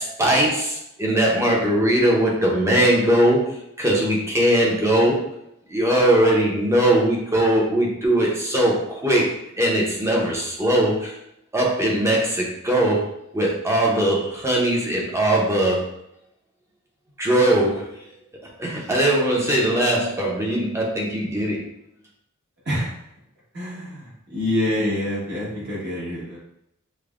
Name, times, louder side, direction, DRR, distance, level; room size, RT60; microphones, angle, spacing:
voice 1, 0.0-5.2 5.7-9.3 9.6-11.2 11.5-15.9 17.2-17.9 18.6-21.7, right 1 dB, 15° right, -2 dB, 0.7 m, -20 dB
voice 2, 23.5-26.4, left 1 dB, 50° right, -6 dB, 1.3 m, -26 dB
5.1 x 2.2 x 2.4 m, 0.77 s
head